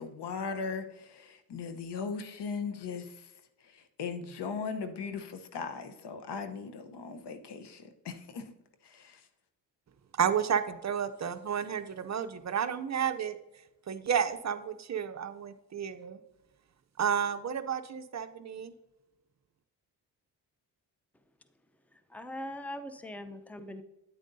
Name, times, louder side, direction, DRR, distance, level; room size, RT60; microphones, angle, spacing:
voice 1, 0.0-3.3 3.6-8.5 8.8-9.3, left 5 dB, 65° left, 8 dB, 1.0 m, -38 dB
voice 2, 10.2-13.4 13.9-16.2 17.0-18.7, right 8 dB, 40° right, 10 dB, 0.6 m, -31 dB
voice 3, 22.1-23.8, left 1 dB, 5° left, 9 dB, 0.6 m, -41 dB
9.3 x 8.9 x 2.7 m, 0.94 s
cardioid pair, 75°, 44 cm